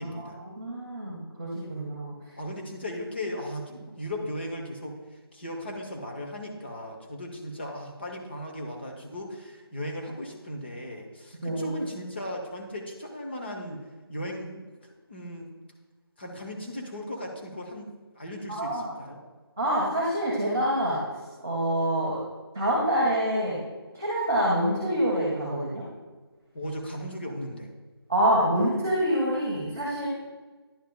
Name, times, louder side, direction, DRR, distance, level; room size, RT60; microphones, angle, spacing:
voice 1, 0.0-0.4 2.4-5.0 5.3-13.8 14.1-14.6 15.1-15.5 16.2-17.9 18.1-19.2 26.5-27.7, equal, 25° left, 1 dB, 0.8 m, -36 dB
voice 2, 0.6-2.1 11.4-11.7 18.5-18.9 19.6-21.0 21.4-22.2 22.5-23.6 23.9-25.8 28.1-30.1, equal, 5° right, -12 dB, 0.5 m, -26 dB
10.5 x 7.2 x 2.2 m, 1.3 s
figure-of-eight pair, 170°, 13 cm